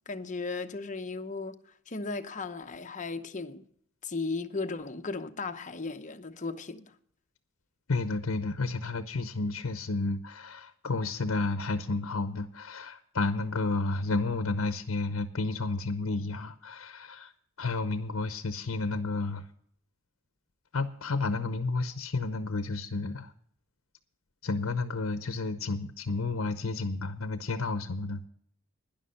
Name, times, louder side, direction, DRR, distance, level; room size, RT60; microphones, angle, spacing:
voice 1, 0.1-3.7 4.0-6.9, left 3 dB, 40° left, 0.9 m, -36 dB
voice 2, 7.9-17.3 17.6-19.4 20.7-23.3 24.4-28.3, left 3 dB, 85° left, 0.8 m, -31 dB
11.5 x 10.5 x 5.6 m
head